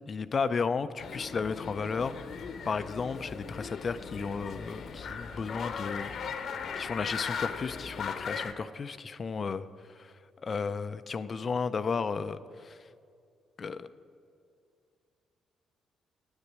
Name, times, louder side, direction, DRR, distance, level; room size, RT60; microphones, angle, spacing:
voice 1, 0.1-2.2 2.7-9.7 10.0-12.8 13.6-13.9, left 5 dB, 40° left, 13 dB, 0.4 m, -34 dB
sound 1, 1.0-8.5, left 6 dB, 60° left, 0.8 m, -38 dB
9.0 x 6.8 x 8.7 m, 2.4 s
cardioid pair, 90°, 0 cm